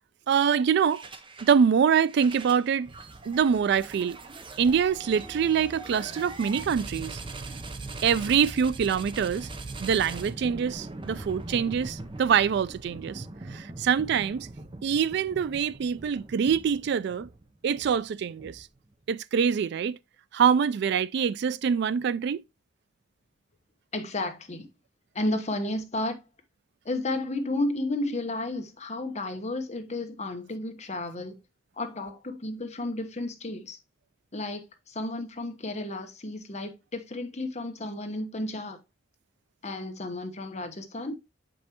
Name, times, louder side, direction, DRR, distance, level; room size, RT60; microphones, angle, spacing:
voice 1, 0.3-1.0 1.4-2.9 3.3-4.2 4.6-7.2 8.0-9.5 9.8-14.5 14.8-17.3 17.6-18.7 19.1-20.0 20.3-22.4, right 7 dB, 60° right, 0.3 m, -25 dB
sound 1, 0.9-1.6 2.0-18.9, right 3 dB, 25° right, 0.7 m, -41 dB
voice 2, 23.9-24.7 25.1-26.2 26.8-31.4 31.8-33.8 34.3-38.8 39.6-41.2, left 2 dB, 35° left, 1.1 m, -32 dB
7.3 x 5.3 x 2.9 m
head